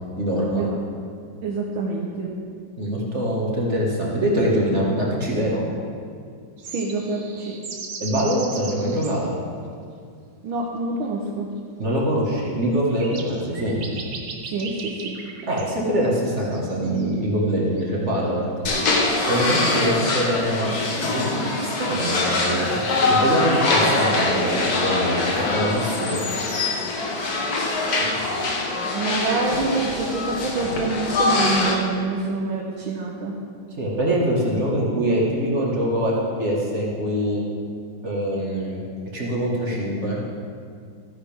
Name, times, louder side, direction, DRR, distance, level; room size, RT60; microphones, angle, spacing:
voice 1, 0.2-0.6 2.8-5.7 8.0-9.3 11.8-13.9 15.5-18.5 19.3-20.7 21.0-26.2 28.1-28.2 33.8-36.1 36.4-37.4 38.0-38.8 39.1-40.2, equal, 35° right, -4 dB, 1.9 m, -24 dB
voice 2, 1.4-2.3 6.6-7.6 10.4-11.5 14.4-15.2 19.5-19.6 28.9-33.3, right 3 dB, 80° right, -2 dB, 1.8 m, -26 dB
sound 1, 6.6-9.2 11.0-11.1 12.3-12.4 12.9-15.7 16.0-17.4 17.8-17.9 20.4-20.5 20.7-20.8 23.1-23.6, right 4 dB, 50° right, 1.3 m, -37 dB
sound 2, 18.7-31.7, left 2 dB, 55° left, 1.6 m, -23 dB
14.0 x 10.0 x 3.6 m, 2.2 s
omnidirectional pair, 2.2 m